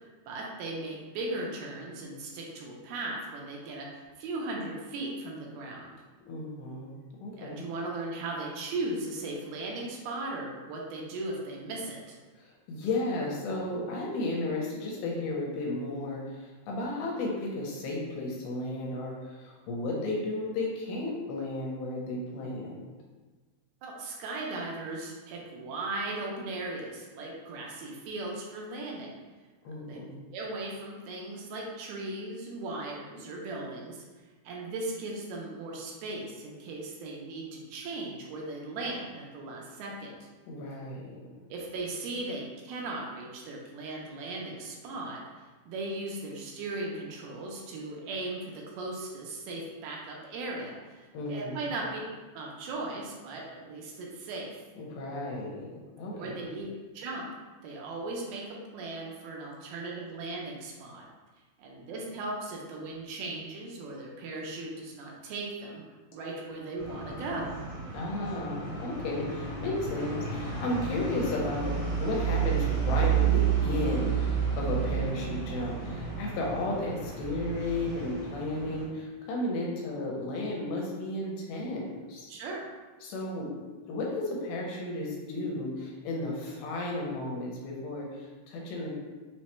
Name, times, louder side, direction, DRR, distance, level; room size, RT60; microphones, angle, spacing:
voice 1, 0.3-3.9 4.2-6.0 7.4-12.2 23.8-29.1 29.8-30.0 30.3-34.0 34.4-40.3 41.5-52.0 52.4-54.5 56.1-57.2 57.6-61.1 61.6-65.8 66.1-67.6 82.3-82.7, right 2 dB, 80° right, -2 dB, 2.6 m, -37 dB
voice 2, 6.3-6.9 7.2-7.7 12.4-22.9 29.6-30.1 40.5-41.3 51.1-51.7 54.8-56.3 67.9-82.3 83.0-83.5 83.9-88.9, left 2 dB, 85° left, -2 dB, 2.6 m, -34 dB
sound 1, 66.8-78.8, right 7 dB, 65° right, 1.6 m, -31 dB
6.2 x 2.2 x 3.0 m, 1.3 s
omnidirectional pair, 4.4 m